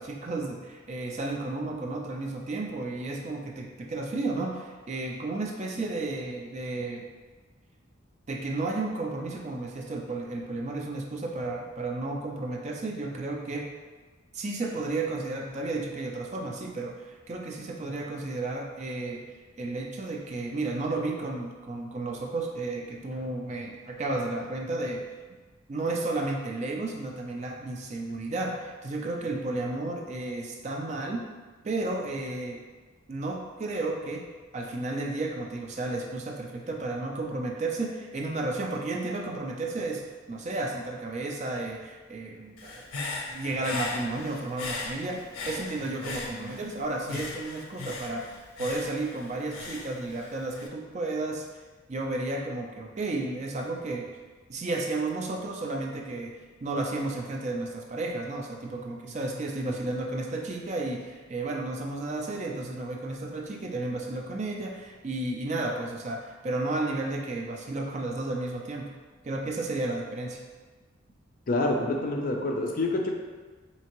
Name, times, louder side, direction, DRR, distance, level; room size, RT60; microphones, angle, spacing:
voice 1, 0.0-7.1 8.3-13.7 14.3-19.2 19.6-25.1 25.7-31.3 31.6-32.6 33.1-34.3 34.5-42.8 43.3-51.5 51.9-54.1 54.5-68.9 69.2-70.4, right 2 dB, 35° right, 1 dB, 0.3 m, -33 dB
Human voice / Breathing, 42.6-46.7 47.1-50.7, left 3 dB, 90° left, 0.5 m, -38 dB
voice 2, 71.5-73.2, left 2 dB, 40° left, 2 dB, 0.4 m, -27 dB
4.3 x 2.8 x 2.9 m, 1.4 s
head